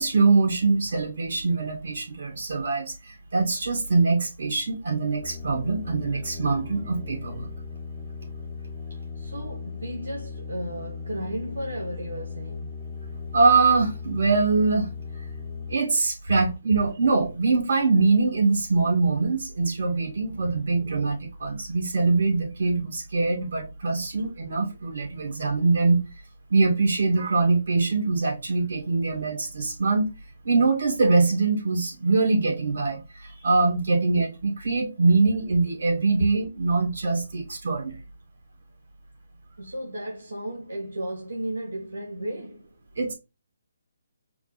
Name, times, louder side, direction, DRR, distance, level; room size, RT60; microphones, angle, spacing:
voice 1, 0.0-7.5 13.3-14.9 15.7-26.0 26.5-30.1 30.4-37.9 42.9-43.1, right 3 dB, 65° right, 2.4 m, -23 dB
sound 1, 5.2-15.8, left 5 dB, ahead, 0.5 m, -37 dB
voice 2, 9.1-12.8 39.6-42.7, right 1 dB, 90° right, 1.5 m, -34 dB
4.7 x 2.2 x 4.3 m
hypercardioid pair, 155°, 0 cm